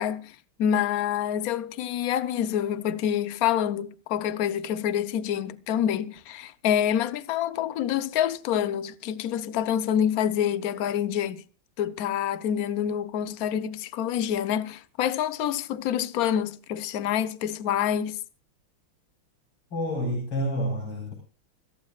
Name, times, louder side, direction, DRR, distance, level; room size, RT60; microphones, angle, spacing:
voice 1, 0.0-11.4 11.8-18.2, left 9 dB, 60° left, 0.9 m, -27 dB
voice 2, 19.7-21.1, equal, 85° left, 5.2 m, -28 dB
25.5 x 14.0 x 2.4 m
omnidirectional pair, 2.4 m